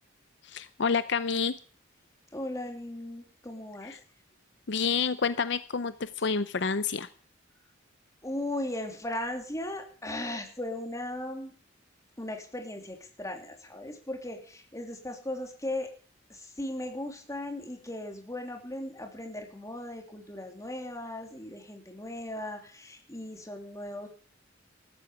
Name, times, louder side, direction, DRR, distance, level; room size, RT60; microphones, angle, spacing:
voice 1, 0.4-1.5 3.8-4.0 4.7-7.1, left 5 dB, 65° left, 13 dB, 0.7 m, -29 dB
voice 2, 2.3-3.9 5.0-5.1 8.2-11.5 12.2-15.9 16.3-24.1, left 1 dB, 15° left, 3 dB, 3.1 m, -37 dB
14.0 x 13.0 x 5.0 m, 0.43 s
head